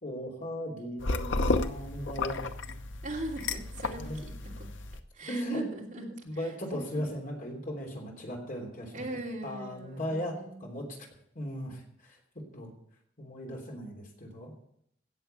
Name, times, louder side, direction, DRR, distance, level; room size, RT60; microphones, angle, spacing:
voice 1, 0.0-2.4 3.9-4.2 5.3-5.6 6.2-9.0 9.4-10.3 10.6-11.1 11.3-12.2 12.5-12.7 13.2-14.5, equal, 45° left, 0 dB, 3.2 m, -37 dB
sound 1, 1.0-5.0, left 2 dB, 70° left, 0.9 m, -32 dB
voice 2, 3.0-4.1 4.4-4.7 5.1-7.2 8.9-10.7, right 1 dB, 40° right, -1 dB, 2.9 m, -41 dB
17.0 x 7.0 x 6.9 m, 0.71 s
head